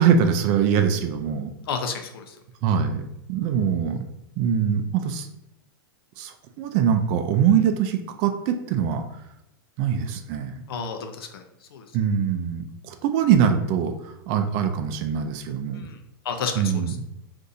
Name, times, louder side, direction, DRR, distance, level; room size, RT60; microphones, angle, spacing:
voice 1, 0.0-1.5 2.6-3.0 3.3-4.0 4.4-5.3 6.2-9.0 9.8-10.6 11.9-15.9 16.6-16.9, right 7 dB, 45° right, 6 dB, 0.4 m, -23 dB
voice 2, 1.7-2.4 10.7-11.4 11.7-11.8 15.7-16.0 16.2-17.0, left 5 dB, 75° left, 6 dB, 0.5 m, -31 dB
2.6 x 2.5 x 4.0 m, 0.83 s
hypercardioid pair, 125°, 12 cm